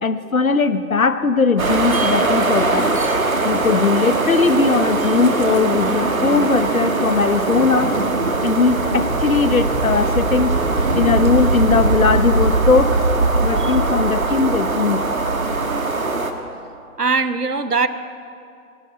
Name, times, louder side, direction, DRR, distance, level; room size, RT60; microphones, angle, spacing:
voice 1, 0.0-3.0 3.4-7.9 8.4-10.5 10.9-13.0 13.4-15.0, left 4 dB, 65° left, 11 dB, 1.0 m, -19 dB
sound 1, 1.6-16.3, right 3 dB, 65° right, 1.4 m, -20 dB
voice 2, 17.0-17.9, right 4 dB, 85° right, 13 dB, 1.0 m, -20 dB
18.0 x 7.1 x 9.1 m, 2.5 s
figure-of-eight pair, 150°, 45 cm